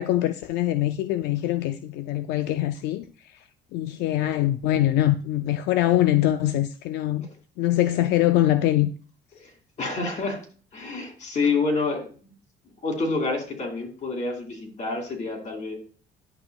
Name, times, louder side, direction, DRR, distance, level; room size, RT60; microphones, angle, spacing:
voice 1, 0.0-3.1 3.7-7.3 7.6-8.9, left 13 dB, 85° left, 0.4 m, -23 dB
voice 2, 9.8-10.4 10.7-12.3 12.8-15.7, left 3 dB, 45° left, 2.6 m, -28 dB
10.5 x 5.9 x 2.3 m
cardioid pair, 110°, 17 cm